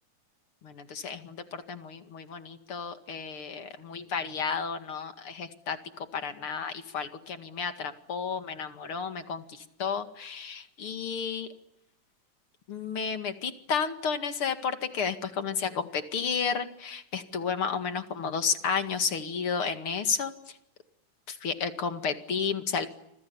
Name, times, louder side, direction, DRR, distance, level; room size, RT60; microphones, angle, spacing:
voice 1, 0.6-11.5 12.7-20.6 21.3-22.9, left 6 dB, 45° left, 8 dB, 2.6 m, -32 dB
29.5 x 26.5 x 7.1 m, 0.84 s
omnidirectional pair, 3.7 m